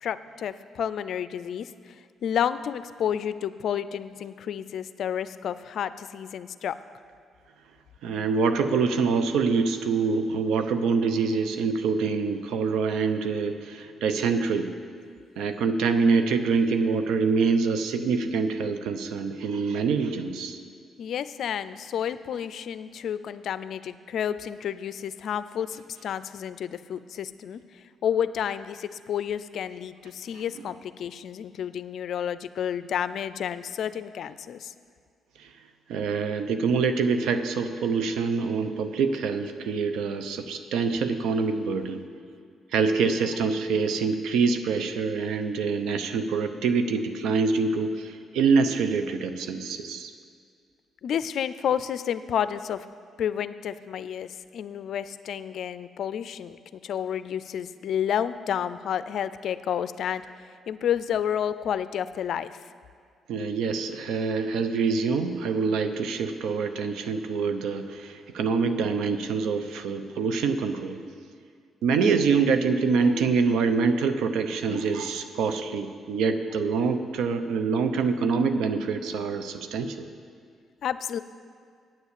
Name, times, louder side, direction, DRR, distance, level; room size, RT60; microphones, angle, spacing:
voice 1, 0.0-6.8 21.0-34.7 51.0-52.8 53.2-60.2 60.7-62.5 80.8-81.2, left 9 dB, 70° left, 14 dB, 0.4 m, -30 dB
voice 2, 8.0-14.7 15.4-20.6 35.4-35.5 35.9-42.0 42.7-50.1 63.3-71.0 71.8-80.1, right 5 dB, 85° right, 9 dB, 0.7 m, -25 dB
9.4 x 7.3 x 8.3 m, 2.1 s
cardioid pair, 90°, 0 cm